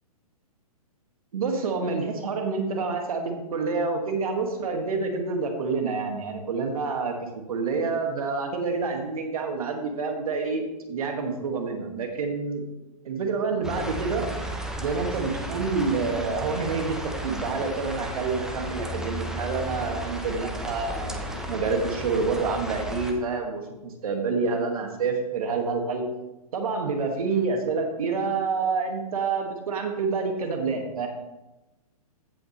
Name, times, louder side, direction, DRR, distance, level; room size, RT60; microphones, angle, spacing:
voice 1, 1.3-12.6 13.0-14.3 14.8-26.0 26.5-31.1, right 4 dB, 65° right, 4 dB, 1.9 m, -28 dB
sound 1, 13.6-23.1, right 1 dB, 5° right, 0.9 m, -34 dB
15.5 x 5.8 x 3.2 m, 0.99 s
hypercardioid pair, 125°, 20 cm